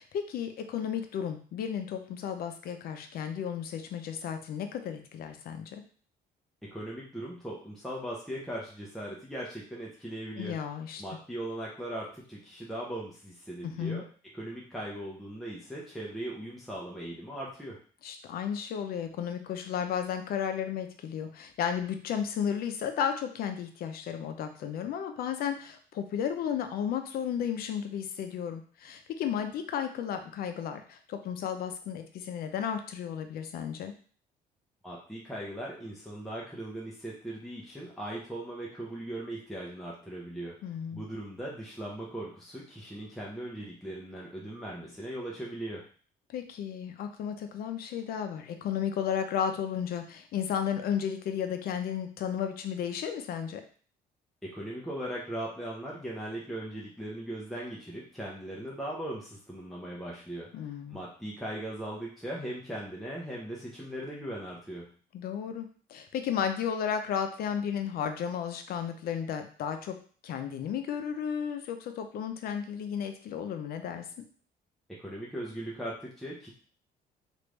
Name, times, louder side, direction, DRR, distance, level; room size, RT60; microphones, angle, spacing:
voice 1, 0.0-5.8 10.4-11.0 13.6-14.0 18.0-33.9 40.6-41.0 46.3-53.6 60.5-61.0 65.1-70.0 70.2-74.0, left 8 dB, 65° left, 7 dB, 0.6 m, -33 dB
voice 2, 6.7-10.6 11.0-14.0 14.3-17.8 34.8-40.5 40.9-45.8 54.4-64.9 75.0-76.5, right 1 dB, ahead, -4 dB, 0.7 m, -39 dB
3.2 x 2.5 x 3.1 m, 0.43 s
cardioid pair, 110°, 17 cm